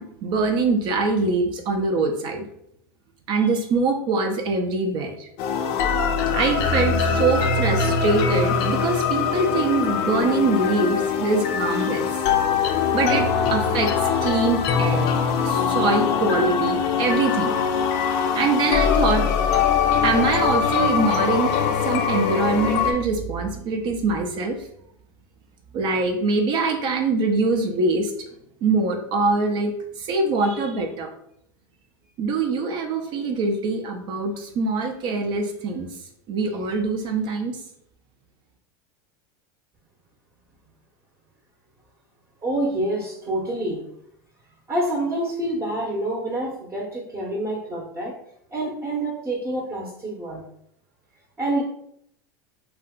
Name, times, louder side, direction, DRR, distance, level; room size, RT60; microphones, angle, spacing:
voice 1, 0.0-2.4 3.3-5.3 6.3-12.1 12.9-15.1 15.4-17.5 18.3-19.3 20.0-21.5 21.8-24.5 25.7-28.1 28.6-29.7 30.0-31.1 32.2-35.9 36.3-37.5, right 3 dB, 50° right, 4 dB, 0.5 m, -23 dB
sound 1, 5.4-22.9, left 6 dB, 55° left, 0.4 m, -22 dB
voice 2, 42.4-43.8 44.7-48.1 48.5-50.4 51.4-51.6, right 1 dB, 20° right, -2 dB, 0.8 m, -27 dB
2.4 x 2.2 x 3.6 m, 0.72 s
supercardioid pair, 115°, 10 cm